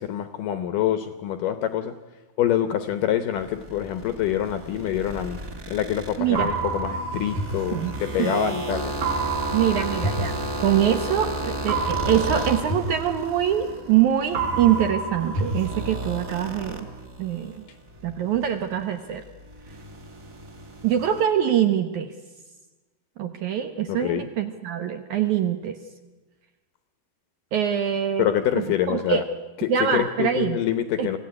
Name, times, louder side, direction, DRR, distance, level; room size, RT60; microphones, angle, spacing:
voice 1, 0.0-2.0 2.4-5.4 5.7-8.9 23.9-24.3 28.2-29.2 29.6-31.2, left 10 dB, 75° left, 11 dB, 2.0 m, -26 dB
sound 1, 3.4-17.6 17.9-21.2, right 1 dB, 30° right, 1.8 m, -34 dB
voice 2, 6.2-6.5 7.7-8.3 9.5-16.9 17.2-17.6 18.0-19.2 20.8-22.1 23.2-25.8 27.5-28.3 28.6-29.2 29.7-30.6 31.0-31.2, right 10 dB, 75° right, 8 dB, 1.7 m, -24 dB
sound 2, 6.4-8.4 9.0-11.1 11.7-14.0 14.3-16.4, right 3 dB, 55° right, 4.3 m, -29 dB
25.0 x 15.5 x 9.6 m, 1.2 s
omnidirectional pair, 4.7 m